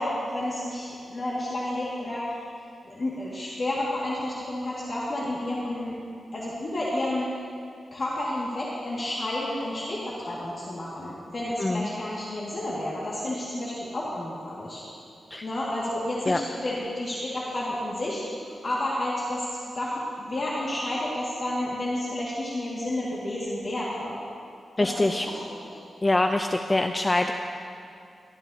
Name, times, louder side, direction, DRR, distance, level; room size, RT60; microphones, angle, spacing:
voice 1, 0.0-2.4 2.8-5.9 6.3-7.3 7.9-14.8 15.4-18.2 18.6-24.2 24.8-25.8, left 1 dB, 35° left, -7 dB, 1.9 m, -31 dB
voice 2, 24.8-25.3 26.0-27.3, left 2 dB, 20° left, 5 dB, 0.4 m, -24 dB
23.0 x 13.0 x 2.8 m, 2.4 s
wide cardioid pair, 175°, 0 cm